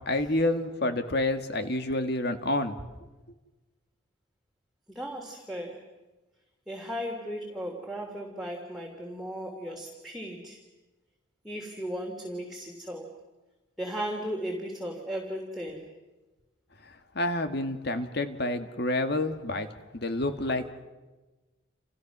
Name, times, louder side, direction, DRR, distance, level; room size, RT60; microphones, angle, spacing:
voice 1, 0.1-2.8 17.2-19.7 19.9-20.7, left 1 dB, 55° left, 7 dB, 2.0 m, -28 dB
voice 2, 4.9-5.8 6.7-10.6 11.4-13.1 13.8-15.9, equal, ahead, 0 dB, 3.2 m, -36 dB
30.0 x 29.5 x 6.2 m, 1.2 s
head